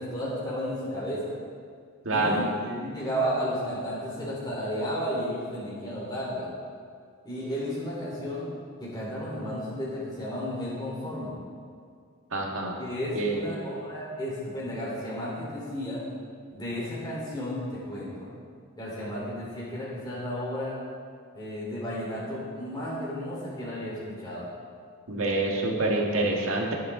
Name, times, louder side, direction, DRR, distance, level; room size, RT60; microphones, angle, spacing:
voice 1, 0.0-1.3 2.1-6.5 7.2-8.5 8.8-11.3 12.8-16.0 16.6-18.3 18.8-20.7 21.3-24.5, equal, 20° left, -7 dB, 3.6 m, -33 dB
voice 2, 2.0-2.4 12.3-12.7 13.2-13.5 25.1-26.7, right 2 dB, 75° right, 0 dB, 1.7 m, -26 dB
19.0 x 7.8 x 3.8 m, 2.1 s
head